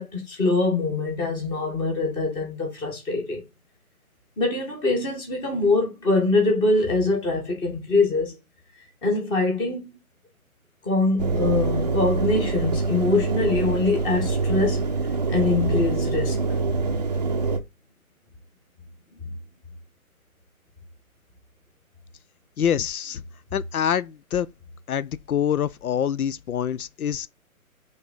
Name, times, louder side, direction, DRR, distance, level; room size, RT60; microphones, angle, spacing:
voice 1, 0.0-3.4 4.4-8.4 9.0-9.9 10.8-14.9 15.3-16.4, left 3 dB, 10° left, 1.3 m, -23 dB
Engine, 11.2-17.6, right 4 dB, 30° right, 0.6 m, -25 dB
voice 2, 22.6-23.2 23.5-24.5 24.9-27.3, left 9 dB, 80° left, 0.6 m, -25 dB
8.0 x 3.7 x 3.9 m
hypercardioid pair, 155°, 43 cm